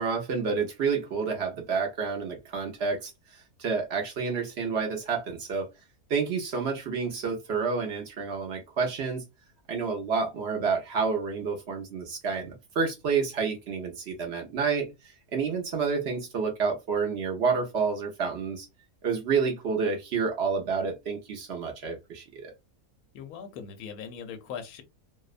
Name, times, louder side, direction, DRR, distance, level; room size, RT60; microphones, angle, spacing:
voice 1, 0.0-5.7 6.1-9.2 9.7-18.7 19.0-22.5, right 5 dB, 60° right, 0.6 m, -29 dB
voice 2, 23.1-24.8, left 7 dB, 70° left, 1.0 m, -40 dB
2.7 x 2.0 x 2.4 m
omnidirectional pair, 1.7 m